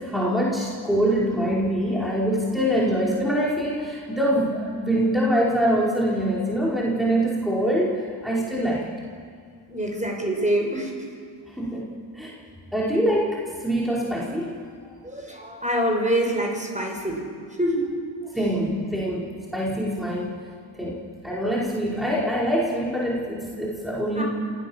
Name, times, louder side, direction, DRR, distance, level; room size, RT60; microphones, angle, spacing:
voice 1, 0.0-8.8 11.6-11.9 12.1-12.4 12.7-14.9 18.3-19.3 19.5-20.4 20.8-20.9 21.2-24.2, equal, ahead, -5 dB, 4.9 m, -24 dB
voice 2, 9.7-10.9 15.0-17.3 17.6-17.9 24.2-24.3, right 1 dB, 15° right, 1 dB, 5.7 m, -25 dB
26.5 x 16.5 x 7.2 m, 2.1 s
cardioid pair, 50°, 47 cm